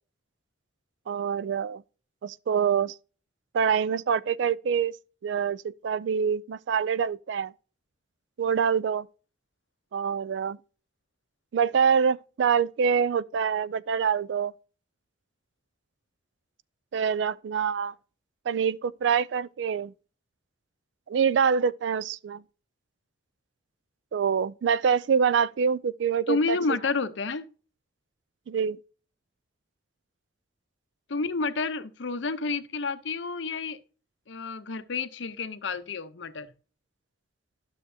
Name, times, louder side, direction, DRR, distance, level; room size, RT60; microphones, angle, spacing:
voice 1, 1.1-1.8 2.2-2.9 3.5-4.9 5.2-7.5 8.4-9.1 9.9-10.6 11.5-14.5 16.9-17.9 18.5-19.9 21.1-22.4 24.1-26.6 28.5-28.8, right 7 dB, 70° right, 0.3 m, -25 dB
voice 2, 26.3-27.5 31.1-33.8 34.3-36.5, left 4 dB, 70° left, 0.7 m, -30 dB
12.0 x 6.4 x 2.7 m
head